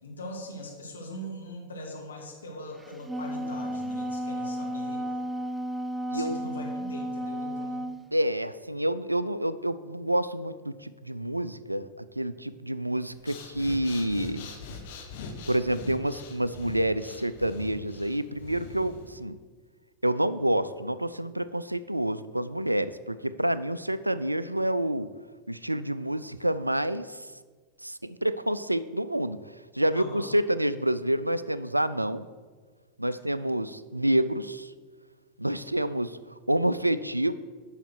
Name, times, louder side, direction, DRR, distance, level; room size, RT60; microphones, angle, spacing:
voice 1, 0.0-5.0 6.1-7.9 29.9-30.3, left 1 dB, 70° left, -1 dB, 2.3 m, -41 dB
Wind instrument woodwind instrument, 2.8-8.0, equal, 10° right, 0.4 m, -33 dB
voice 2, 6.1-6.5 8.1-14.5 15.5-19.4 20.0-25.1 25.5-27.3 27.8-29.4 29.7-32.3 33.0-34.7 35.4-36.2 36.5-37.3, right 1 dB, 85° right, 15 dB, 0.4 m, -28 dB
Breathing, 13.1-19.2, left 4 dB, 50° left, 1.3 m, -43 dB
9.3 x 5.8 x 6.3 m, 1.5 s
figure-of-eight pair, 90°, 0 cm